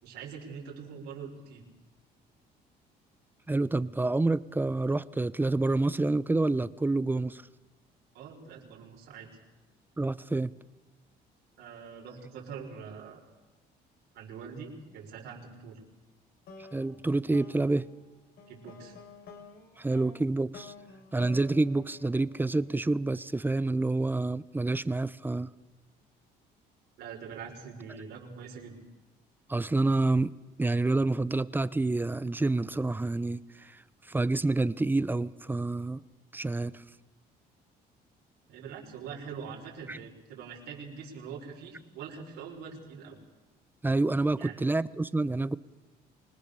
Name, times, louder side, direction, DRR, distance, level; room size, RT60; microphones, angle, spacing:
voice 1, 0.0-1.6 8.1-9.3 11.6-13.2 14.1-15.8 18.5-19.0 27.0-28.8 38.5-43.2 44.4-44.5, right 6 dB, 85° right, 0 dB, 5.6 m, -43 dB
voice 2, 3.5-7.4 10.0-10.5 16.7-17.9 19.8-20.7 21.1-25.5 29.5-33.8 34.1-36.0 36.3-36.8 39.9-40.0 43.8-45.6, right 2 dB, 10° right, 17 dB, 0.7 m, -28 dB
sound 1, 16.5-22.9, left 3 dB, 65° left, 4.3 m, -51 dB
25.5 x 20.0 x 6.9 m, 1.2 s
cardioid pair, 110°, 17 cm